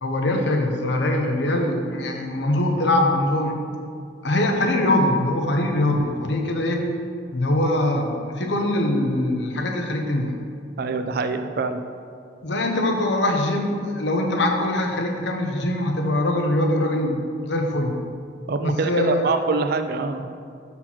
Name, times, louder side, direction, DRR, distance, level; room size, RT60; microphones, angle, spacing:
voice 1, 0.0-3.6 4.2-6.9 7.3-10.3 12.4-17.9 18.6-19.3, left 1 dB, 75° left, 3 dB, 0.9 m, -22 dB
voice 2, 10.8-11.8 18.5-20.2, right 4 dB, 60° right, 8 dB, 0.4 m, -24 dB
5.8 x 4.4 x 5.9 m, 2.3 s
head